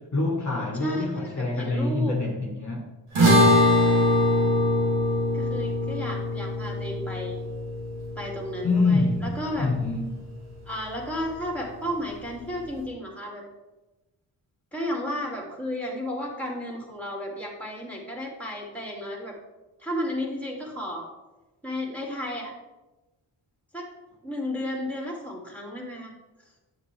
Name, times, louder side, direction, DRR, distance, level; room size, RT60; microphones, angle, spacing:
voice 1, 0.1-2.9 8.6-10.2, left 3 dB, 35° left, 0 dB, 1.4 m, -26 dB
voice 2, 0.8-2.2 5.3-7.4 8.2-9.7 10.7-13.4 14.7-19.4 19.8-21.1 21.6-22.5 23.7-23.9 24.2-26.1, left 1 dB, 5° left, 0 dB, 2.3 m, -33 dB
sound 1, 3.1-9.7, left 1 dB, 80° right, 2.4 m, -22 dB
7.3 x 7.0 x 3.3 m, 1.1 s
cardioid pair, 50°, 49 cm